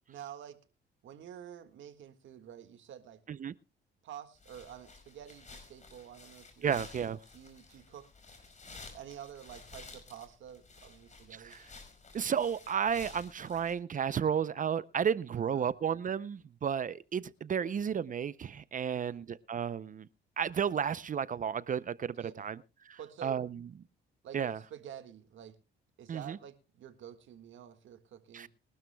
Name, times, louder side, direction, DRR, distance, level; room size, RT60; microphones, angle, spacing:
voice 1, 0.1-0.6 1.0-3.2 4.0-6.8 7.3-8.1 8.9-11.6 15.3-15.7 18.8-19.3 22.1-22.5 23.0-23.4 24.2-25.6 26.0-28.5, right 10 dB, 75° right, 1.8 m, -49 dB
sound 1, 4.4-13.7, left 4 dB, 35° left, 5.2 m, -53 dB
voice 2, 6.6-7.2 11.3-11.7 12.1-20.1 20.4-22.6 22.9-23.6 24.3-24.6 26.1-26.4 28.3-28.5, right 7 dB, 40° right, 0.6 m, -33 dB
22.5 x 12.5 x 2.3 m
cardioid pair, 90°, 20 cm